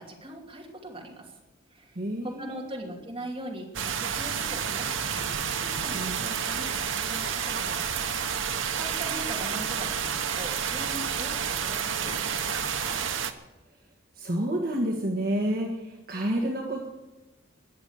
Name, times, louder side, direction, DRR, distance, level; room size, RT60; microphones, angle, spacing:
voice 1, 0.0-1.4 1.7-8.0 8.3-13.0, right 1 dB, 25° right, -1 dB, 2.8 m, -41 dB
voice 2, 1.9-2.7 5.9-6.3 14.1-16.8, right 1 dB, 50° right, 0 dB, 1.6 m, -29 dB
sound 1, 3.7-13.3, right 7 dB, 75° right, 1.0 m, -30 dB
20.5 x 7.2 x 8.1 m, 1.0 s
head